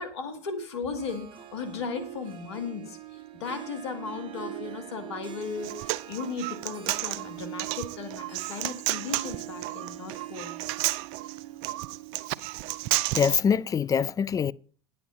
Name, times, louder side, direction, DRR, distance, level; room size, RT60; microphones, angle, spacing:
voice 1, 0.0-10.5, left 5 dB, 85° left, 1.9 m, -36 dB
Harp, 1.0-13.2, right 13 dB, 35° right, 1.4 m, -43 dB
Human voice, 5.4-13.4, right 18 dB, 65° right, 0.4 m, -32 dB
voice 2, 13.1-14.5, left 7 dB, 25° left, 0.4 m, -24 dB
9.3 x 7.7 x 5.5 m
hypercardioid pair, 80°, 14 cm